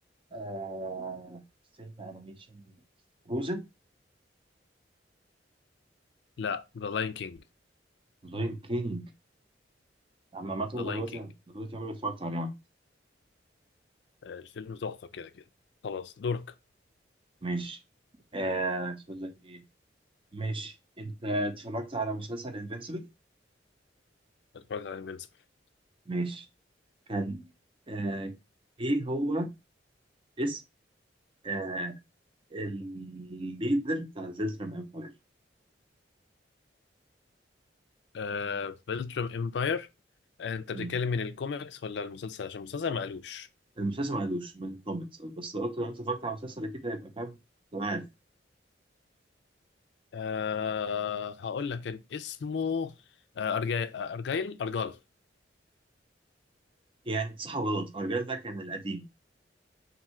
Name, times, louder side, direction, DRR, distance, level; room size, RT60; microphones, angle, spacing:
voice 1, 0.3-1.4 1.8-2.7 3.3-3.7 8.2-9.1 10.3-12.5 17.4-17.8 18.3-19.6 20.3-23.1 26.1-26.4 27.1-27.4 27.9-28.4 28.8-29.5 30.4-30.6 31.4-32.0 32.5-35.1 40.7-40.9 43.8-47.4 47.7-48.1 57.1-59.1, right 1 dB, 30° right, 0.6 m, -33 dB
voice 2, 6.4-7.4 10.7-11.0 14.2-15.4 15.8-16.5 24.5-25.3 38.1-39.9 40.4-43.5 50.1-52.9 53.4-55.0, left 6 dB, 65° left, 0.4 m, -33 dB
3.6 x 2.6 x 4.2 m
head